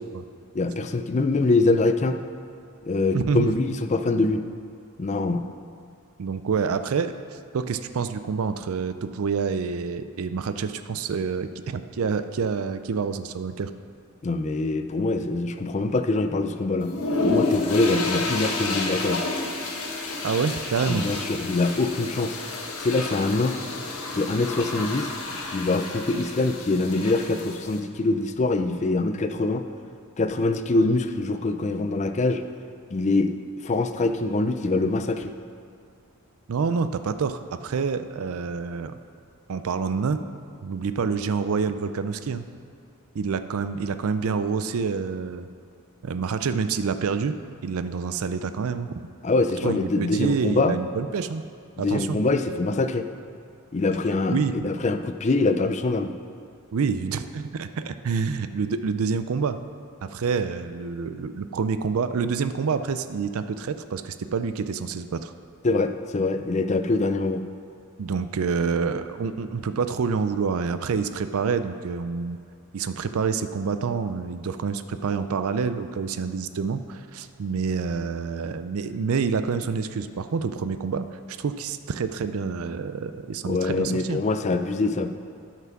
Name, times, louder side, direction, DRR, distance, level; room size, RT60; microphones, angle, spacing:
voice 1, 0.5-2.2 2.8-4.4 5.0-5.4 14.2-16.9 17.2-19.2 20.9-22.4 22.8-23.6 24.1-25.1 25.5-29.6 30.2-32.4 32.9-33.3 33.6-35.3 49.2-50.7 51.8-53.1 53.7-54.4 54.6-56.1 65.6-67.4 83.5-85.1, left 2 dB, 30° left, 8 dB, 0.4 m, -24 dB
voice 2, 3.1-3.5 6.2-7.1 7.5-13.7 20.2-21.0 36.5-39.0 39.5-40.2 40.6-42.4 43.1-45.5 46.0-47.3 47.6-48.9 49.6-51.4 51.8-52.2 54.3-54.7 56.7-59.6 60.0-65.3 68.0-72.4 72.7-84.3, right 5 dB, 75° right, 11 dB, 0.4 m, -27 dB
sound 1, 16.8-27.8, left 3 dB, 75° left, 1.3 m, -30 dB
9.3 x 5.9 x 5.9 m, 2.5 s
head